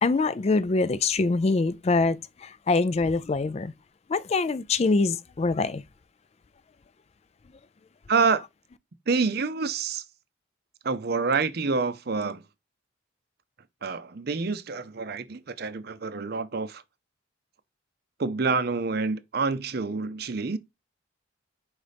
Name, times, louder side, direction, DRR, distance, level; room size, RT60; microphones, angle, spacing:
voice 1, 0.0-3.7 4.1-5.8, left 3 dB, 30° left, 0.3 m, -24 dB
voice 2, 8.1-8.4 9.1-10.0 10.8-12.4 13.8-16.8 18.2-20.6, right 4 dB, 50° right, 0.6 m, -27 dB
5.1 x 4.1 x 5.0 m
head